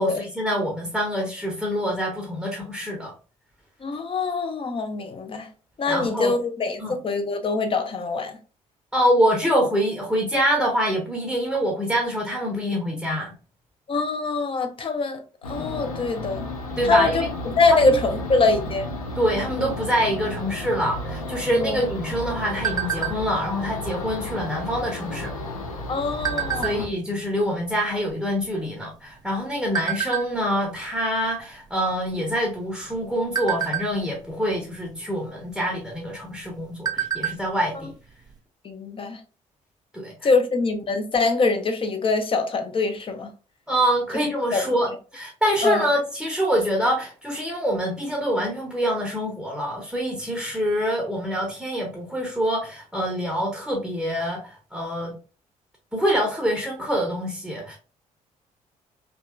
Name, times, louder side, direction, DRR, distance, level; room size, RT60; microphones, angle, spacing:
voice 1, 0.0-3.1 5.9-6.3 6.8-6.9 8.9-13.3 16.8-17.3 17.7-17.9 19.1-25.3 26.6-37.9 39.9-40.3 43.7-55.1 55.9-57.8, equal, ahead, 0.8 m, -25 dB
voice 2, 3.8-5.5 5.8-8.4 13.9-16.5 16.8-18.9 21.5-21.9 25.9-26.8 38.6-39.2 40.2-43.3 44.5-44.6 45.6-45.9, left 3 dB, 30° left, 0.5 m, -24 dB
sound 1, 15.4-26.9, left 1 dB, 85° left, 0.4 m, -33 dB
sound 2, 21.5-23.5 23.9-24.2 24.5-24.8 25.5-27.1 27.7-27.8 28.0-29.3 29.7-30.2 30.8-31.0 31.3-31.5 32.0-32.5 32.9-34.4 35.4-35.5 36.0-36.1 36.4-37.5 37.8-37.9 38.3-38.4, right 9 dB, 20° right, 0.4 m, -28 dB
2.8 x 2.3 x 2.4 m
figure-of-eight pair, 45°, 18 cm